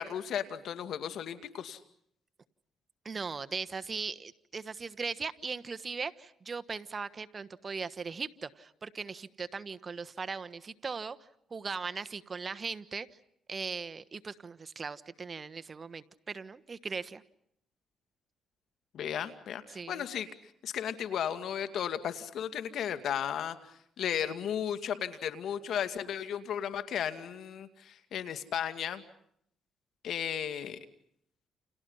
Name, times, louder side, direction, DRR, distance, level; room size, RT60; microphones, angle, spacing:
voice 1, 0.0-1.8 18.9-20.3 20.6-23.6 24.0-29.0 30.0-30.8, left 9 dB, 70° left, 10 dB, 2.2 m, -34 dB
voice 2, 3.0-11.2 11.5-13.1 13.5-17.2 19.7-20.1, right 5 dB, 35° right, 12 dB, 1.2 m, -39 dB
30.0 x 29.0 x 5.6 m, 0.70 s
cardioid pair, 90°, 0 cm